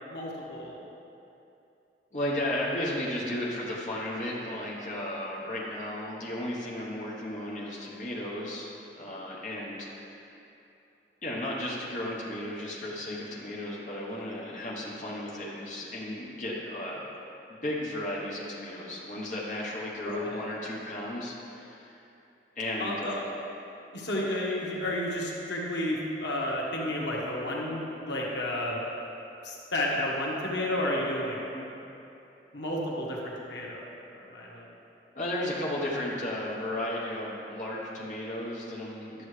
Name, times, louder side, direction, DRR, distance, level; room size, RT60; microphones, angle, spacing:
voice 1, 0.1-0.8 20.2-20.4 22.8-23.1 23.9-28.8 29.4-31.7 32.5-33.8 34.3-34.7, left 1 dB, 85° left, -3 dB, 1.4 m, -31 dB
voice 2, 2.1-10.3 11.2-17.1 17.5-21.9 22.5-23.3 35.1-39.2, left 1 dB, 45° left, -5 dB, 1.2 m, -34 dB
11.5 x 6.9 x 3.3 m, 2.8 s
head